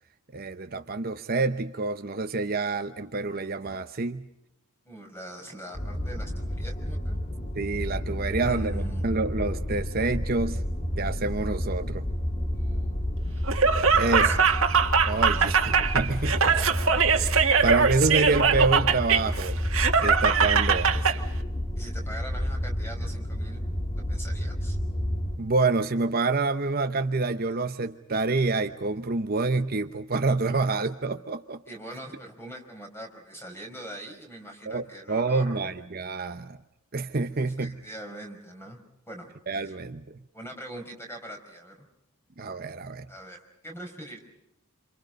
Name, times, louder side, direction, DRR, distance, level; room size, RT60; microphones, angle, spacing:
voice 1, 0.3-4.3 7.6-10.6 11.0-12.1 13.9-14.3 15.0-16.6 17.1-19.6 20.0-21.1 25.4-31.6 34.7-36.6 36.9-37.8 39.5-40.0 42.4-43.1, right 3 dB, 45° right, 8 dB, 0.8 m, -27 dB
voice 2, 4.9-7.2 8.3-9.1 12.5-13.4 14.0-14.7 15.3-15.5 21.8-23.6 24.0-24.8 31.7-35.7 37.3-38.8 39.1-39.3 39.6-39.8 40.3-41.9 43.1-44.2, right 1 dB, 10° left, 3 dB, 5.2 m, -42 dB
sound 1, 5.7-25.4, equal, 30° left, 2.0 m, -30 dB
Laughter, 13.5-21.2, right 6 dB, 65° right, 1.9 m, -22 dB
27.5 x 27.5 x 5.3 m, 0.86 s
head